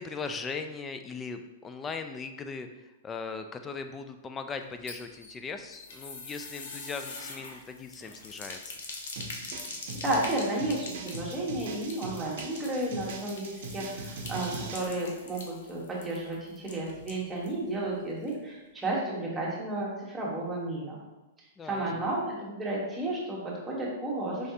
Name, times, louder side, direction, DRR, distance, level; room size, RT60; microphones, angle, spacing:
voice 1, 0.0-8.7 21.6-22.1, left 4 dB, 20° left, 7 dB, 0.4 m, -39 dB
sound 1, 4.6-17.6 17.9-18.0 18.3-18.4, left 3 dB, 65° left, 0.8 m, -44 dB
sound 2, 9.1-14.9, right 3 dB, 65° right, 0.6 m, -41 dB
voice 2, 10.0-21.0 21.6-24.5, right 1 dB, 10° right, -5 dB, 1.2 m, -32 dB
4.7 x 3.2 x 2.8 m, 1.1 s
hypercardioid pair, 135°, 0 cm